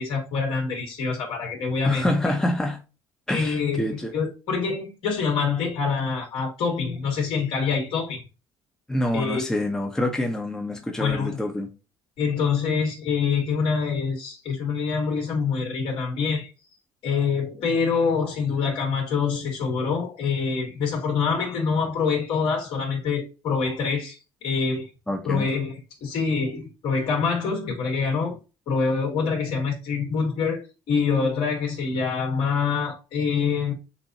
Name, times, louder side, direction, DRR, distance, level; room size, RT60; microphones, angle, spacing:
voice 1, 0.0-2.4 3.3-8.2 9.1-9.5 11.0-11.4 12.2-16.5 17.0-24.9 25.2-28.3 28.7-33.7, left 5 dB, 70° left, 2.8 m, -25 dB
voice 2, 1.8-2.8 3.3-4.1 8.9-11.7 25.1-25.5, left 1 dB, 5° left, 0.7 m, -26 dB
6.8 x 2.7 x 2.7 m
cardioid pair, 120°, 10 cm